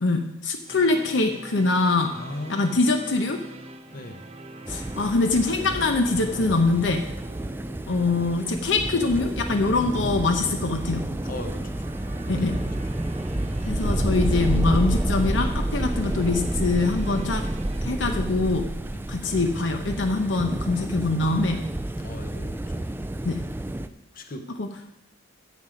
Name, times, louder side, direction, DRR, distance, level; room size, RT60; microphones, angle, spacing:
voice 1, 0.0-2.2 2.5-3.4 4.7-7.1 7.9-11.1 12.3-12.6 13.7-17.4 17.8-18.7 19.1-21.6 23.2-23.4 24.6-24.7, left 3 dB, 75° left, 5 dB, 0.8 m, -24 dB
sound 1, 0.7-17.8, right 1 dB, 35° right, 0.9 m, -43 dB
voice 2, 2.2-2.8 3.9-4.2 11.2-12.5 18.9-19.0 22.0-22.9 24.1-24.5, left 1 dB, 45° left, 6 dB, 0.9 m, -38 dB
sound 2, 4.6-23.9, right 1 dB, 10° right, 0.3 m, -29 dB
9.5 x 7.4 x 5.1 m, 0.85 s
head